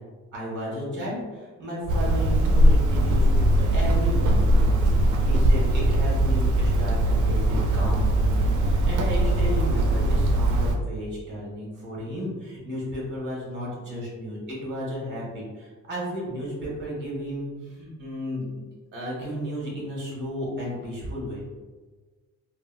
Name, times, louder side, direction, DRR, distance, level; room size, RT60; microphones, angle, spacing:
voice 1, 0.3-18.6 18.9-21.4, equal, 35° right, -5 dB, 1.3 m, -33 dB
Hammer, 1.9-10.8, right 1 dB, 75° right, 0.5 m, -21 dB
3.8 x 2.0 x 2.4 m, 1.3 s
cardioid pair, 90°, 30 cm